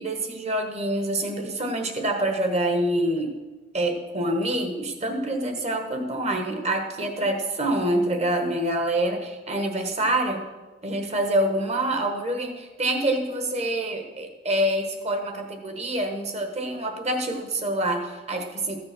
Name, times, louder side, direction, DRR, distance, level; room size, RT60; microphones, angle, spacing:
voice 1, 0.0-3.3 3.7-10.4 10.8-18.8, right 1 dB, 35° right, 5 dB, 1.4 m, -26 dB
14.5 x 6.7 x 6.0 m, 1.2 s
head